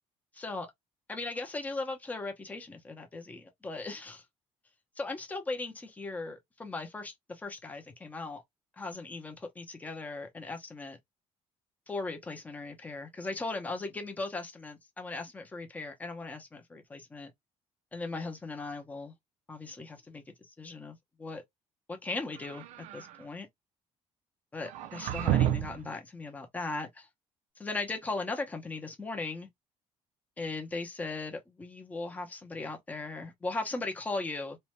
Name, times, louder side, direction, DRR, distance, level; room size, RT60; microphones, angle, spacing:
voice 1, 0.3-0.7 1.1-4.2 5.0-8.4 8.8-11.0 11.9-17.3 17.9-19.1 19.5-21.4 21.9-23.5 24.5-27.1 27.6-29.5 30.4-34.6, left 3 dB, 15° left, 0.6 m, -38 dB
sound 1, 22.3-23.2 24.7-25.9, right 12 dB, 80° right, 0.4 m, -30 dB
2.6 x 2.1 x 3.0 m
cardioid pair, 165°, 12 cm